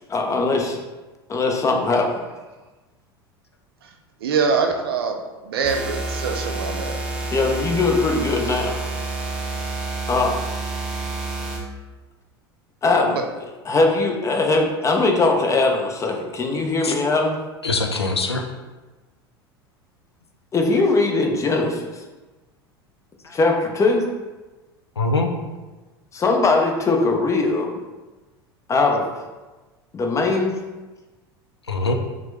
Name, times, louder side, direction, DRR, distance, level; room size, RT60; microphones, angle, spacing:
voice 1, 0.1-0.8 1.3-2.2 7.3-8.8 10.1-10.3 12.8-13.2 13.7-17.4 20.5-22.0 23.3-24.1 26.1-27.8 28.7-29.1 29.9-30.5, left 3 dB, 25° left, 2 dB, 0.7 m, -20 dB
voice 2, 4.2-5.2 5.4-7.0 13.0-13.2, right 5 dB, 65° right, 3 dB, 0.6 m, -23 dB
sound 1, 5.6-11.6, right 3 dB, 5° right, 0.9 m, -29 dB
voice 3, 17.6-18.5 23.3-23.4 25.0-25.3 28.9-29.1 31.7-31.9, left 3 dB, 85° left, 5 dB, 0.4 m, -23 dB
5.9 x 2.2 x 3.3 m, 1.2 s
figure-of-eight pair, 75°, 13 cm